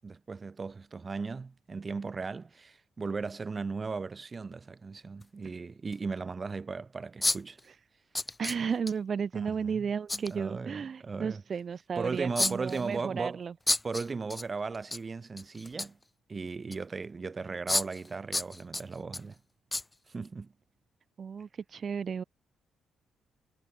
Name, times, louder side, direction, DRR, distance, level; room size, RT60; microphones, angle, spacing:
voice 1, 0.0-7.6 9.3-9.9 10.3-11.4 12.0-13.4 13.8-16.0 16.3-19.4 20.1-20.5, right 4 dB, 35° right, 6.6 m, -37 dB
sound 1, 3.3-3.4 5.2-5.3 5.9-6.0 7.2-7.6 8.1-8.9 10.1-10.3 12.4-12.9 13.7-14.4 14.7-15.0 15.4-16.0 16.7-16.8 17.7-18.1 18.3-19.2 19.7-19.8 20.3-20.4, left 2 dB, 15° left, 1.4 m, -30 dB
voice 2, 8.4-13.5 21.2-22.2, right 6 dB, 50° right, 4.3 m, -33 dB
cardioid pair, 75°, 0 cm